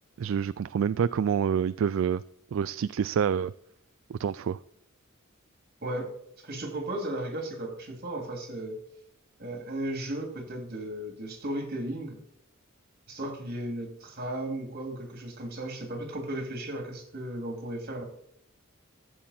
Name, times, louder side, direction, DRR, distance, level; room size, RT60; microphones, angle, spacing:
voice 1, 0.2-2.2 2.5-3.5 4.1-4.6, right 7 dB, 65° right, 15 dB, 0.3 m, -27 dB
voice 2, 5.8-8.8 9.4-12.2 13.1-18.0, right 1 dB, 45° right, 4 dB, 2.8 m, -35 dB
14.0 x 7.7 x 4.3 m, 0.69 s
head